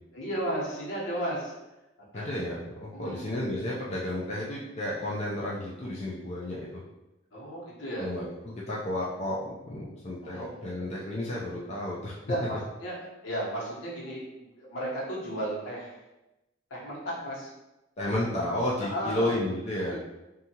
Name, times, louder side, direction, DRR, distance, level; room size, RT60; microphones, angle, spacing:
voice 1, 0.1-1.5 2.1-2.3 2.9-3.3 7.3-8.1 10.2-10.7 12.3-13.0 13.2-16.0 16.7-17.5 18.8-19.4 19.9-20.0, right 1 dB, 75° left, -5 dB, 1.0 m, -34 dB
voice 2, 2.1-6.8 8.0-12.2 18.0-20.0, left 1 dB, 35° left, -6 dB, 0.4 m, -32 dB
2.7 x 2.4 x 2.8 m, 0.98 s
head